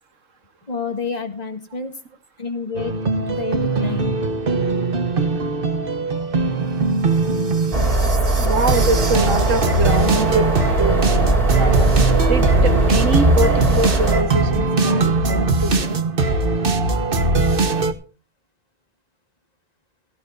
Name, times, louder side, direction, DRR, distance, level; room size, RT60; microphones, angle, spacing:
voice 1, 0.7-1.9 2.4-3.0 3.3-4.3, left 5 dB, 35° left, 6 dB, 1.9 m, -29 dB
sound 1, 2.7-17.9, right 3 dB, 45° right, 1.4 m, -20 dB
sound 2, 7.7-14.2, right 2 dB, 30° right, 2.7 m, -20 dB
voice 2, 8.4-10.5 10.8-16.0, right 3 dB, 85° right, 9 dB, 1.9 m, -24 dB
17.5 x 14.5 x 2.6 m, 0.33 s
omnidirectional pair, 1.3 m